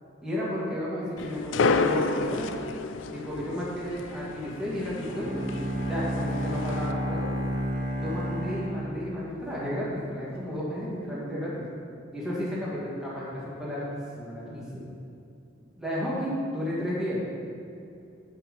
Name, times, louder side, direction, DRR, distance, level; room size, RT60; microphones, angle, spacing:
voice 1, 0.2-2.5 3.1-5.4 5.8-7.2 8.0-11.7 12.1-14.9 15.8-17.2, equal, 5° right, -8 dB, 2.1 m, -32 dB
sound 1, 1.2-6.9, left 4 dB, 70° left, 0.4 m, -31 dB
Bowed string instrument, 5.1-9.5, right 1 dB, 50° right, 1.3 m, -31 dB
8.4 x 5.8 x 5.5 m, 2.6 s
head